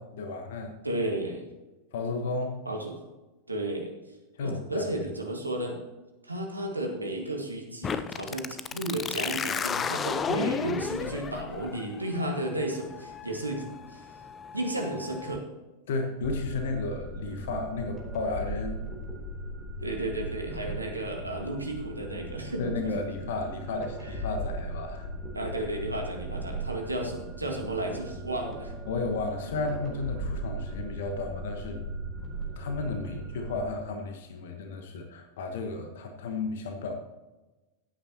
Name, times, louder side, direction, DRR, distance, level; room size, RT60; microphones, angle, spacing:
voice 1, 0.0-0.7 1.9-2.6 4.3-4.9 15.9-18.9 22.6-25.1 28.9-31.8 32.6-36.9, left 3 dB, 60° left, 5 dB, 1.3 m, -33 dB
voice 2, 0.8-1.4 2.7-3.0 3.5-3.9 4.4-5.8 6.2-14.0 14.5-15.4 19.8-22.9 25.3-28.7 33.1-33.2, right 1 dB, 85° right, 2 dB, 1.8 m, -33 dB
sound 1, 7.8-15.4, left 6 dB, 25° left, 0.6 m, -34 dB
sound 2, 16.2-33.7, right 1 dB, 5° left, 4.0 m, -38 dB
15.5 x 8.9 x 3.0 m, 1.1 s
figure-of-eight pair, 90°, 0 cm